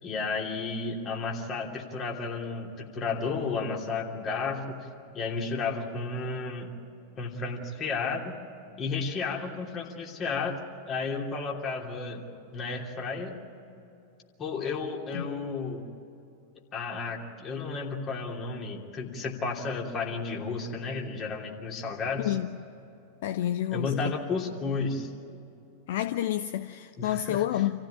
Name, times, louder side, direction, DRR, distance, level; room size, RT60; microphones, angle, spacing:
voice 1, 0.0-4.8 5.1-6.7 7.2-8.4 8.8-12.2 12.5-13.4 14.4-15.8 16.7-22.4 23.7-25.1 27.0-27.4, left 4 dB, 30° left, 3.0 m, -32 dB
voice 2, 23.2-24.1 25.9-27.7, left 12 dB, 55° left, 0.6 m, -29 dB
27.5 x 15.0 x 9.2 m
figure-of-eight pair, 90°, 0 cm